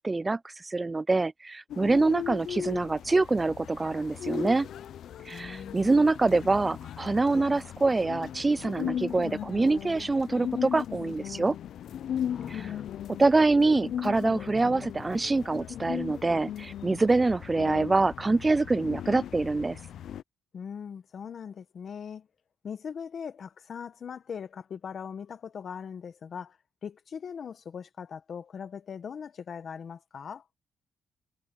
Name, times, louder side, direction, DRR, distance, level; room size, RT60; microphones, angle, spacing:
voice 1, 0.0-4.7 5.3-11.6 12.5-12.7 13.2-19.8, right 3 dB, 20° right, 0.4 m, -25 dB
sound 1, 1.7-20.2, left 10 dB, 70° left, 0.7 m, -37 dB
voice 2, 5.3-6.1 12.3-12.8 20.5-22.3 22.6-26.6 26.8-30.4, left 7 dB, 50° left, 1.5 m, -40 dB
cardioid pair, 105°, 0 cm